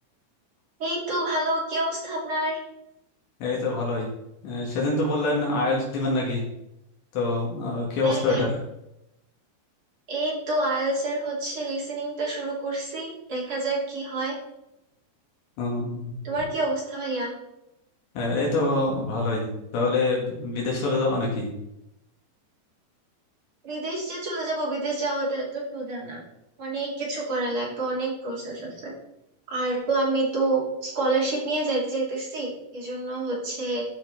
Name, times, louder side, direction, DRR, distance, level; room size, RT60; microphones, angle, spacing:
voice 1, 0.8-2.6 8.0-8.5 10.1-14.3 16.2-17.3 23.6-26.2 26.6-28.9 29.5-33.8, right 2 dB, 35° right, -4 dB, 3.3 m, -28 dB
voice 2, 3.4-4.1 4.4-6.4 7.1-8.5 15.6-16.1 18.2-19.5 19.7-21.5, left 2 dB, 80° left, -3 dB, 4.2 m, -25 dB
13.0 x 5.8 x 4.2 m, 0.85 s
omnidirectional pair, 5.1 m